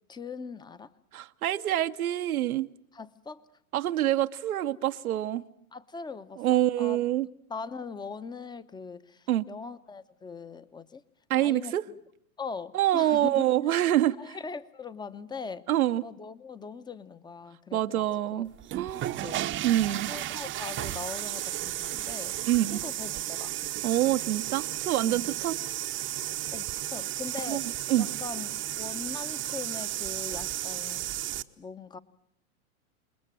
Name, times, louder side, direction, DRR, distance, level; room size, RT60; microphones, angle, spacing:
voice 1, 0.1-0.9 2.9-3.4 5.7-7.0 7.5-11.0 11.4-12.0 12.4-13.8 14.2-15.7 16.0-18.1 18.3-18.5 19.2-19.4 20.1-22.3 22.7-23.9 25.0-25.4 26.5-27.7 28.0-31.3 31.6-32.0, left 4 dB, 10° left, 1.0 m, -41 dB
voice 2, 1.1-2.7 3.7-5.4 6.4-7.3 9.3-9.5 11.3-11.9 12.7-14.4 15.7-16.0 17.7-19.1 19.6-20.1 22.4-22.8 23.8-25.6 27.5-27.6 27.9-28.1, right 13 dB, 75° right, 1.0 m, -26 dB
sound 1, 18.5-31.4, right 13 dB, 25° right, 0.9 m, -34 dB
28.0 x 21.5 x 7.6 m
hypercardioid pair, 105°, 43 cm